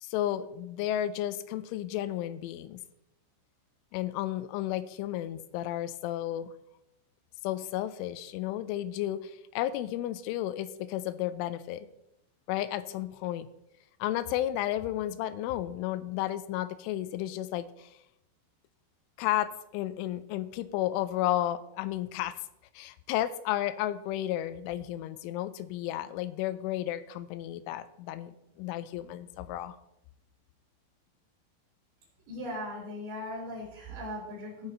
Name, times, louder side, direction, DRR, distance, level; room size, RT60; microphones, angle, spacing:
voice 1, 0.0-2.8 3.9-6.5 7.4-11.9 12.5-13.5 14.0-17.9 19.2-22.3 22.8-29.8, left 13 dB, 85° left, 13 dB, 3.0 m, -33 dB
voice 2, 32.3-34.7, left 1 dB, 55° right, -5 dB, 5.4 m, -38 dB
17.0 x 5.7 x 4.3 m, 0.84 s
omnidirectional pair, 5.7 m